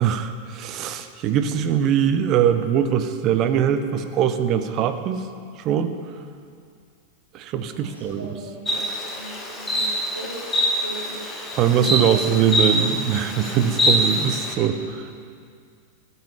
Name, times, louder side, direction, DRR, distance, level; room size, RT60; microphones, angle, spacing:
voice 1, 0.0-5.2 5.6-5.9 7.3-8.4 11.5-15.1, right 9 dB, 35° right, 9 dB, 0.6 m, -22 dB
voice 2, 7.7-9.9 10.1-10.4 10.8-11.2 11.8-12.1, right 2 dB, 80° right, -4 dB, 1.9 m, -38 dB
Insect, 8.7-14.5, equal, 10° left, 1.5 m, -24 dB
12.0 x 5.6 x 7.2 m, 2.2 s
figure-of-eight pair, 90°, 0 cm